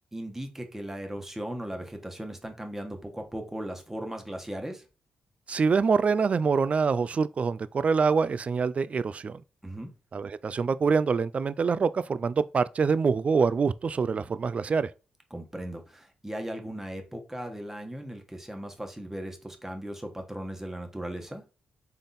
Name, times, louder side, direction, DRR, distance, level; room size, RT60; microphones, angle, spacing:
voice 1, 0.1-4.8 9.6-9.9 15.3-21.4, right 1 dB, 10° right, 1.2 m, -37 dB
voice 2, 5.5-9.4 10.1-14.9, right 5 dB, 45° right, 0.3 m, -25 dB
3.8 x 3.5 x 4.1 m
supercardioid pair, 55°, 3 cm